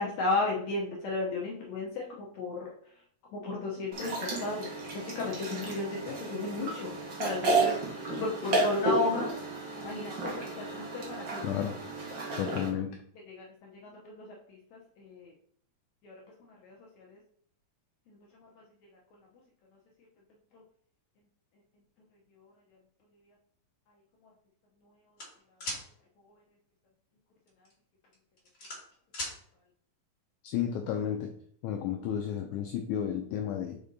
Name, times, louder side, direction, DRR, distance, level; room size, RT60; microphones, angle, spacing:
voice 1, 0.0-2.6 3.3-4.7 5.1-9.3 9.8-11.4 13.3-15.3 16.0-16.1 16.4-17.2 18.1-18.2, left 3 dB, 75° left, -2 dB, 1.7 m, -34 dB
sound 1, 3.9-12.7, right 3 dB, 55° right, 1.4 m, -32 dB
voice 2, 11.4-11.7 12.4-13.0 30.4-31.3 31.6-33.8, left 9 dB, 90° left, 4 dB, 1.7 m, -32 dB
sound 2, 25.2-25.8 27.5-27.7 28.1-29.4, left 1 dB, 30° left, 2.1 m, -37 dB
5.1 x 5.0 x 4.0 m, 0.62 s
omnidirectional pair, 4.1 m